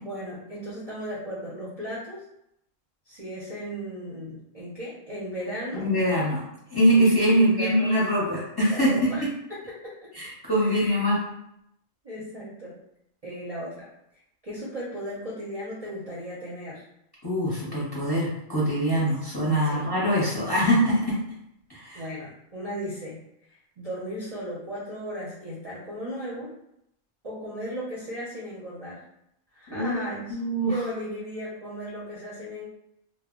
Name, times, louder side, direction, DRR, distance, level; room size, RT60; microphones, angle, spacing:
voice 1, 0.0-2.2 3.1-5.8 7.3-8.0 8.7-10.1 10.6-11.1 12.0-12.8 13.2-13.9 14.4-16.8 19.6-19.9 21.9-23.2 23.5-26.5 27.2-29.0 29.5-32.7, equal, 40° right, -7 dB, 0.5 m, -36 dB
voice 2, 5.7-9.3 10.1-11.2 17.2-21.2 21.7-22.0 29.7-30.0 30.3-30.8, equal, 25° left, -7 dB, 0.6 m, -23 dB
2.1 x 2.1 x 3.6 m, 0.78 s
omnidirectional pair, 1.3 m